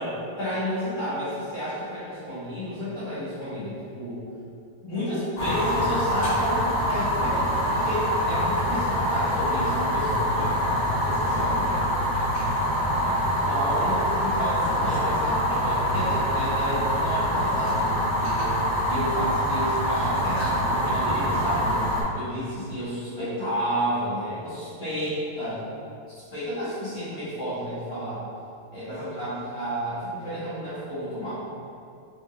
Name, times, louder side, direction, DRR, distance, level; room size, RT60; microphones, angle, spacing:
voice 1, 0.0-4.2 4.8-10.5 11.0-11.6 13.0-13.1 13.5-18.6 18.8-21.8 22.1-25.6 26.3-28.2 28.7-31.3, equal, 45° left, -15 dB, 1.5 m, -31 dB
Fire, 5.4-22.0, equal, 65° left, 2.1 m, -25 dB
5.4 x 2.5 x 2.5 m, 2.5 s
omnidirectional pair, 3.8 m